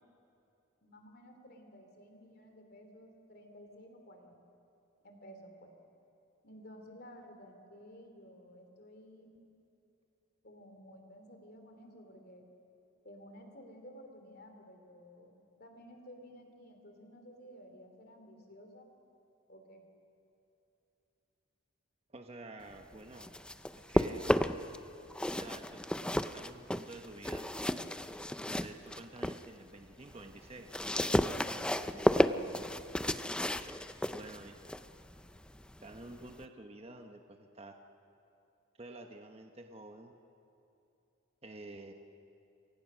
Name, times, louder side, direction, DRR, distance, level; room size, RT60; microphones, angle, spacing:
voice 1, 0.8-4.4 5.0-5.7 6.4-9.4 10.4-12.4 13.0-15.3 15.6-18.9 19.5-19.8 31.8-32.5, equal, 50° left, 4 dB, 3.1 m, -53 dB
voice 2, 22.1-23.3 23.7-24.3 25.3-25.8 26.3-27.5 28.4-30.7 34.1-34.6 35.8-37.8 38.8-40.1 41.4-41.9, right 2 dB, 30° right, 4 dB, 1.0 m, -49 dB
sound 1, 22.9-24.8 25.1-29.4 29.9-36.4, left 1 dB, 5° left, 0.5 m, -33 dB
27.5 x 23.5 x 6.3 m, 2.8 s
head